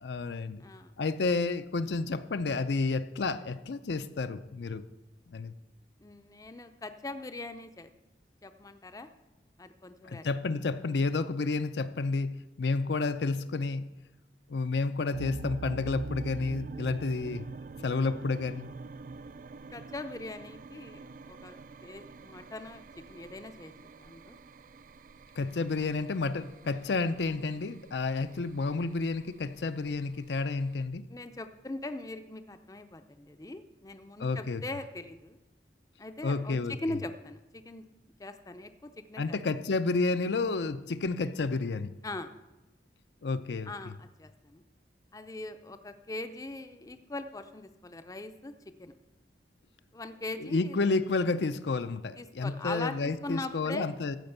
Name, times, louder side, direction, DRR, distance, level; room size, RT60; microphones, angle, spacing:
voice 1, 0.0-0.6 1.0-4.8 5.3-5.5 10.0-12.3 12.6-13.8 14.5-17.5 17.8-18.7 25.4-31.0 34.2-34.6 36.2-37.0 39.2-41.9 43.2-43.7 50.4-54.2, left 3 dB, 70° left, 11 dB, 0.5 m, -30 dB
voice 2, 0.6-0.9 6.0-7.9 8.4-9.1 9.6-10.3 19.7-24.4 31.1-35.4 36.0-37.9 38.2-39.4 42.0-42.3 43.7-44.6 45.1-48.5 48.8-49.0 49.9-50.8 52.2-53.9, left 2 dB, 20° left, 9 dB, 0.5 m, -41 dB
sound 1, 15.1-30.9, right 4 dB, 45° right, 0.3 m, -45 dB
14.0 x 5.2 x 7.9 m, 1.0 s
head